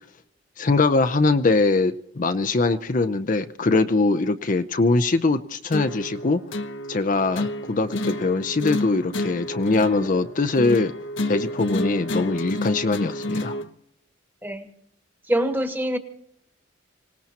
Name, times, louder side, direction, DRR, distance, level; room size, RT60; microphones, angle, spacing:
voice 1, 0.6-6.4 6.9-10.9 11.3-13.6, left 3 dB, 45° left, 9 dB, 0.6 m, -22 dB
sound 1, 5.7-13.7, left 1 dB, 80° left, 1.0 m, -30 dB
voice 2, 15.3-16.0, right 1 dB, 10° right, 8 dB, 1.3 m, -24 dB
25.5 x 18.0 x 2.9 m, 0.76 s
head